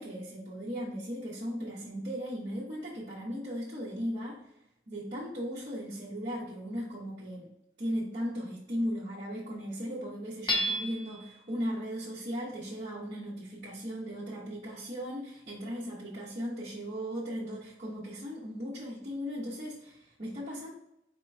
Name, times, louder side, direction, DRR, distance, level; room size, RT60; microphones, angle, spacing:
voice 1, 0.0-4.4 4.9-7.5 7.8-20.7, equal, 40° right, -9 dB, 1.0 m, -37 dB
Hammer / Chink clink, 10.5-11.3, equal, 25° left, 0.7 m, -30 dB
4.5 x 3.0 x 3.3 m, 0.83 s
head